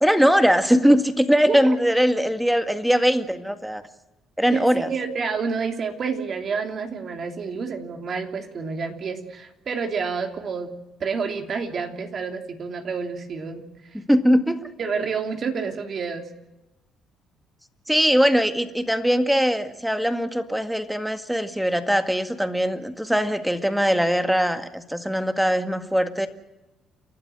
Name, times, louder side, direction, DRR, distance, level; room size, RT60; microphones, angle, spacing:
voice 1, 0.0-3.8 4.4-4.9 13.9-14.7 17.9-26.3, equal, ahead, 8 dB, 1.9 m, -21 dB
voice 2, 4.5-10.7 11.0-13.6 13.9-14.0 14.8-16.3, right 5 dB, 45° right, 5 dB, 3.0 m, -29 dB
29.5 x 12.0 x 7.8 m, 1.0 s
cardioid pair, 95°, 0 cm